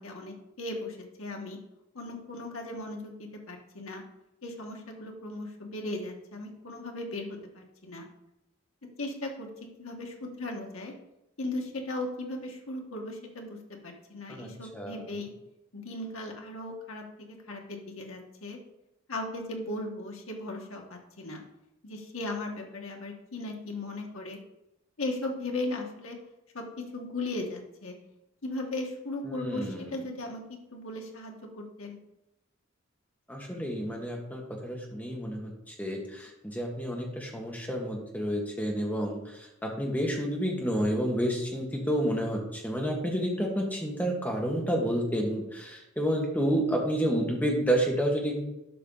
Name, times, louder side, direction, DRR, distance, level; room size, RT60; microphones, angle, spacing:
voice 1, 0.0-1.6 1.9-4.0 4.4-8.1 9.0-9.5 9.8-10.9 11.4-15.3 15.7-18.6 19.1-21.4 21.8-24.4 25.0-26.2 26.5-27.9 28.4-30.4 30.7-32.0, left 2 dB, 85° left, 1 dB, 1.5 m, -37 dB
voice 2, 14.3-15.1 29.3-30.0 33.3-48.4, equal, 10° left, -1 dB, 1.8 m, -30 dB
12.0 x 5.3 x 3.9 m, 0.90 s
head